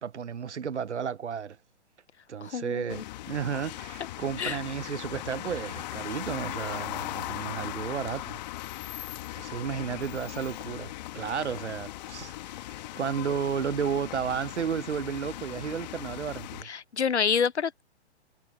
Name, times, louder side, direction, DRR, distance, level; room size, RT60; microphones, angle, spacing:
voice 1, 0.0-1.6 2.3-8.4 9.3-16.7, right 7 dB, 80° right, 0.7 m, -33 dB
voice 2, 2.4-3.0 4.4-4.6 16.6-17.8, left 7 dB, 75° left, 0.8 m, -28 dB
sound 1, 2.9-16.6, left 16 dB, 40° left, 1.7 m, -39 dB
figure-of-eight pair, 120°, 34 cm